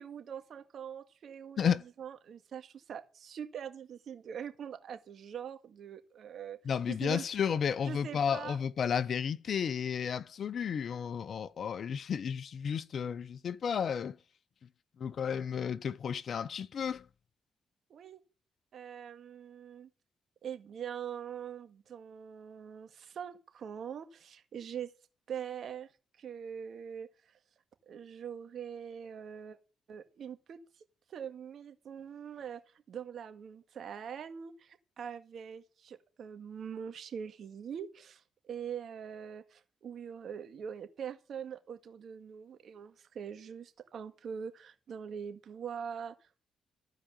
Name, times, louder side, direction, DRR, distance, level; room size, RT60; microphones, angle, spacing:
voice 1, 0.0-6.6 6.9-7.2 7.8-8.6 17.9-18.2 18.7-19.9 20.4-24.9 25.3-25.9 26.2-27.1 27.9-29.6 29.9-30.6 31.1-32.6 32.9-46.4, right 8 dB, 65° right, 1.9 m, -43 dB
voice 2, 6.6-14.2 15.0-17.0, left 7 dB, 60° left, 0.7 m, -32 dB
15.0 x 5.0 x 9.1 m
supercardioid pair, 60°, 0 cm